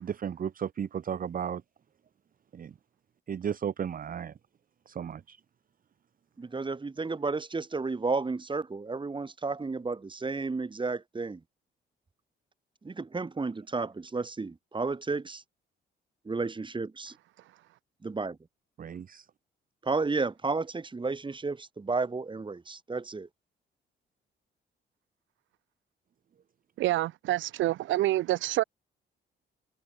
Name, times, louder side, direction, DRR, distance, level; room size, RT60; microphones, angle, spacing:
voice 1, 0.0-1.6 2.5-2.7 3.3-4.3 4.9-5.4 18.8-19.3, right 8 dB, 45° right, 1.0 m, -34 dB
voice 2, 6.4-11.4 12.8-15.4 16.2-17.1 18.0-18.4 19.8-23.3, right 3 dB, 25° right, 2.7 m, -32 dB
voice 3, 26.8-28.6, right 15 dB, 75° right, 0.5 m, -27 dB
cardioid pair, 90°, 20 cm